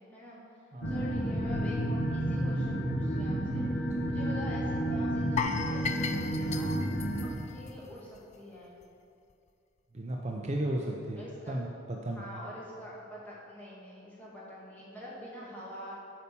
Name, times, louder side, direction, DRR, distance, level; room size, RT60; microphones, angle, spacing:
voice 1, 0.0-6.8 7.2-8.7 11.2-11.6 12.2-16.0, equal, 10° left, -7 dB, 2.3 m, -45 dB
voice 2, 0.7-1.4 4.0-4.4 9.9-12.2, right 1 dB, 35° right, 0 dB, 0.6 m, -35 dB
sound 1, 0.8-7.3, right 1 dB, 65° left, 1.3 m, -31 dB
sound 2, 5.4-8.4 8.6-8.8 9.3-9.4, left 6 dB, 35° left, 0.4 m, -36 dB
8.8 x 5.5 x 6.9 m, 2.4 s
head